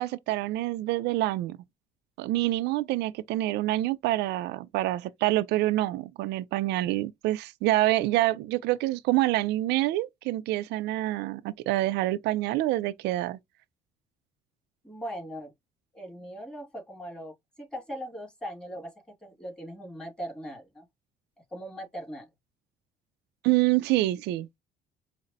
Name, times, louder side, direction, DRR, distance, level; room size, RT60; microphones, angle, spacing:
voice 1, 0.0-1.6 2.2-13.4 23.4-24.5, right 16 dB, 85° right, 0.4 m, -26 dB
voice 2, 14.8-15.5 15.9-20.9 21.5-22.3, equal, 5° left, 2.0 m, -40 dB
5.1 x 2.0 x 2.7 m
cardioid pair, 110°, 17 cm